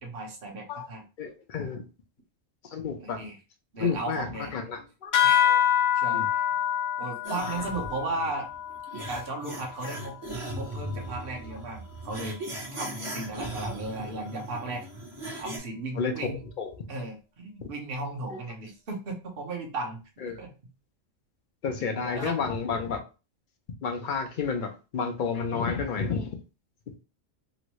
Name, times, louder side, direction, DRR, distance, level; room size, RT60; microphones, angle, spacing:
voice 1, 0.0-1.0 3.0-3.4 3.7-4.5 5.2-5.6 5.9-6.4 7.0-8.5 9.1-10.2 10.5-12.4 12.7-14.8 15.4-16.4 16.9-20.0 20.4-20.5 22.1-22.4, right 2 dB, 50° right, 1.1 m, -35 dB
voice 2, 1.2-1.8 2.7-3.2 3.8-4.3 4.5-5.1 5.5-5.6 6.1-6.3 7.5-7.6 16.0-16.3 16.6-16.9 17.6-17.7 18.3-18.4 20.2-20.4 21.6-23.0 23.8-26.4, left 5 dB, 55° left, 0.6 m, -31 dB
sound 1, 5.1-10.1, left 10 dB, 75° left, 1.0 m, -26 dB
sound 2, 7.2-15.6, right 1 dB, 30° right, 0.9 m, -38 dB
3.0 x 2.6 x 3.0 m
omnidirectional pair, 1.3 m